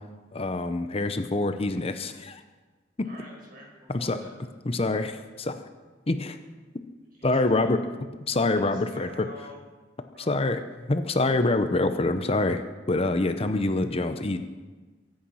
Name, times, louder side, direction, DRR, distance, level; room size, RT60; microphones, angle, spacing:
voice 1, 0.3-2.4 3.0-3.1 3.9-4.2 4.7-5.6 6.1-6.4 7.2-7.8 8.3-9.3 10.3-10.6 10.9-14.4, left 2 dB, 30° left, 9 dB, 0.7 m, -25 dB
voice 2, 3.0-4.3 7.1-7.8 8.5-9.6 10.1-10.4, left 1 dB, 50° right, -3 dB, 6.2 m, -47 dB
24.0 x 8.9 x 5.6 m, 1.3 s
head